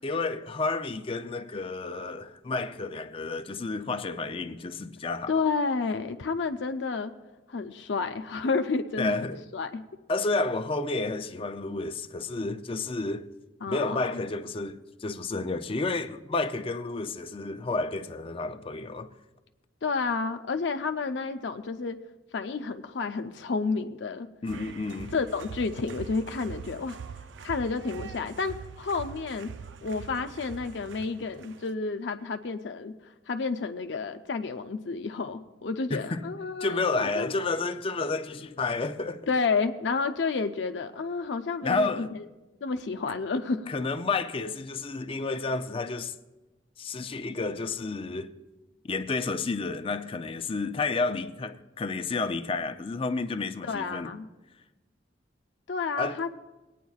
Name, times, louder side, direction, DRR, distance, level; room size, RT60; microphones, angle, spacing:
voice 1, 0.0-5.3 9.0-9.4 10.1-13.3 13.7-19.1 24.4-25.1 35.9-36.2 36.6-39.3 41.6-42.1 43.7-46.1 46.8-48.3 48.8-54.1 56.0-56.2, left 3 dB, 30° left, 0.5 m, -31 dB
voice 2, 5.3-7.1 7.5-9.2 9.5-9.8 13.6-14.2 19.8-22.0 22.3-24.3 25.1-27.0 27.4-29.5 29.8-32.9 33.3-37.3 39.3-42.2 42.6-43.7 53.6-54.3 55.7-56.3, left 4 dB, 75° left, 0.5 m, -30 dB
sound 1, 24.5-31.7, right 6 dB, 85° right, 0.4 m, -43 dB
24.0 x 9.2 x 2.4 m
head